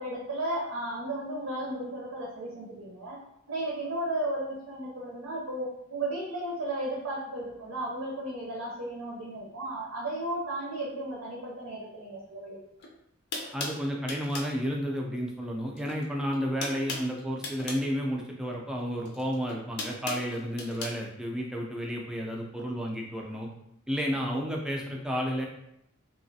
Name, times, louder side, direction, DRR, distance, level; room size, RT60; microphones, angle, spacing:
voice 1, 0.0-3.2 3.5-12.6, right 1 dB, 85° right, -3 dB, 0.6 m, -34 dB
sound 1, 12.8-12.9 13.3-14.6 15.7-16.0 16.3-17.9 19.0-21.0, left 3 dB, 55° left, 0.5 m, -37 dB
voice 2, 13.5-23.5 23.9-25.5, equal, 5° right, -1 dB, 0.4 m, -32 dB
3.1 x 2.4 x 2.6 m, 0.80 s
head